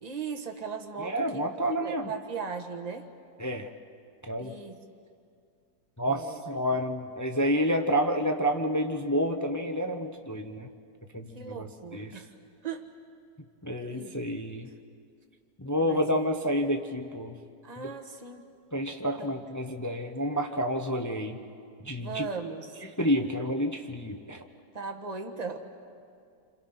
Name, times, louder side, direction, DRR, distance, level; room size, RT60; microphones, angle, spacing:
voice 1, 0.0-1.4 1.8-3.1 4.4-4.8 6.1-6.6 11.3-12.4 12.6-12.9 13.9-14.3 15.8-16.4 17.6-18.4 19.2-19.3 22.0-22.8 24.7-25.6, right 5 dB, 25° right, 4 dB, 1.5 m, -38 dB
voice 2, 1.0-2.1 3.4-3.7 4.3-4.5 6.0-10.7 11.1-12.1 13.6-14.7 15.6-17.3 17.8-17.9 18.7-21.4 21.8-22.3 23.0-24.4, equal, 15° left, 5 dB, 0.7 m, -29 dB
29.0 x 26.5 x 5.9 m, 2.3 s
omnidirectional pair, 1.7 m